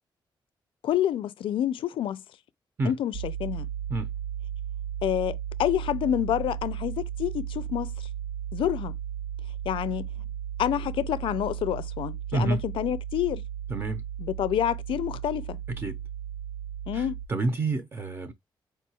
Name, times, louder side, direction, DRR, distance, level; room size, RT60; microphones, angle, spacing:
voice 1, 0.8-2.2 2.8-3.7 5.0-8.1 8.5-9.0 9.7-10.1 10.6-13.4 14.2-15.6 16.9-17.2, left 11 dB, 85° left, 0.4 m, -28 dB
sound 1, 3.1-17.3, right 10 dB, 75° right, 0.4 m, -35 dB
voice 2, 12.3-12.6 13.7-14.0 15.8-16.0 16.9-18.3, right 3 dB, 25° right, 0.6 m, -29 dB
4.6 x 2.3 x 2.8 m
wide cardioid pair, 160°, 9 cm